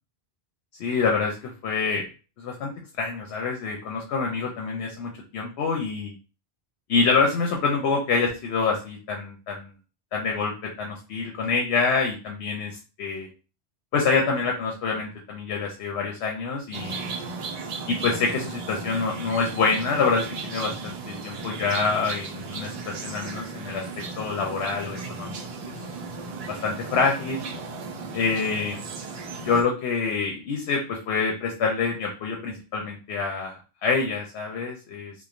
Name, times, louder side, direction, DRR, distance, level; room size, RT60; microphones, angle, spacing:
voice 1, 0.8-2.1 2.4-2.7 3.0-6.1 6.9-9.7 10.1-13.3 13.9-17.2 17.9-23.9 24.2-25.4 26.5-27.4 28.1-28.8 29.4-35.1, left 4 dB, 80° left, 1 dB, 0.8 m, -26 dB
sound 1, 16.7-29.6, right 4 dB, 55° right, 0.4 m, -35 dB
3.0 x 2.1 x 2.4 m, 0.34 s
omnidirectional pair, 1.1 m